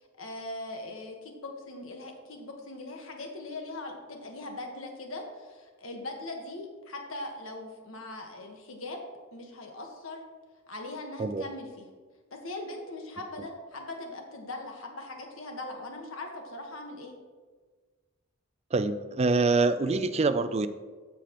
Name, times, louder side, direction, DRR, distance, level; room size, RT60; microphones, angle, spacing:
voice 1, 0.0-9.0 9.3-10.2 10.7-11.9 12.3-17.2, left 2 dB, 80° left, 2 dB, 1.4 m, -40 dB
voice 2, 18.7-20.7, right 3 dB, 30° right, 11 dB, 0.4 m, -25 dB
15.0 x 5.0 x 3.0 m, 1.5 s
head